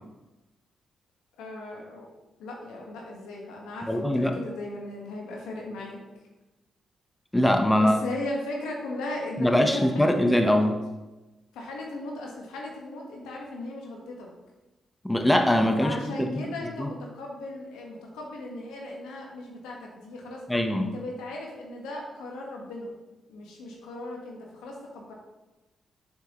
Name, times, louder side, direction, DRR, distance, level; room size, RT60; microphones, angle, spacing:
voice 1, 1.4-2.1 2.4-6.0 7.7-10.7 11.5-14.3 15.8-20.4 20.8-22.9 23.3-25.1, left 2 dB, 90° left, -1 dB, 1.3 m, -37 dB
voice 2, 3.9-4.4 7.3-8.0 9.4-10.8 15.0-16.4 16.8-16.9 20.5-20.9, left 1 dB, 10° left, 5 dB, 0.8 m, -22 dB
6.9 x 6.0 x 3.0 m, 1.1 s
supercardioid pair, 55°, 0 cm